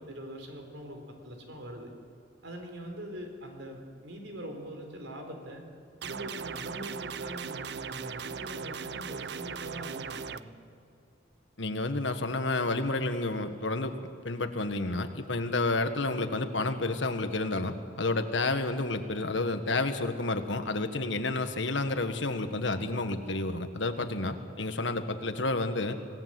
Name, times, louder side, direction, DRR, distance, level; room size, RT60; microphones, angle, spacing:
voice 1, 0.0-1.9 2.4-5.7 6.0-10.6 24.0-24.3, equal, 80° right, 3 dB, 4.1 m, -43 dB
sound 1, 6.0-10.4, right 6 dB, 60° right, 0.6 m, -38 dB
voice 2, 11.6-13.9 14.2-26.0, left 2 dB, 75° left, 8 dB, 1.6 m, -30 dB
26.0 x 17.5 x 7.8 m, 2.6 s
head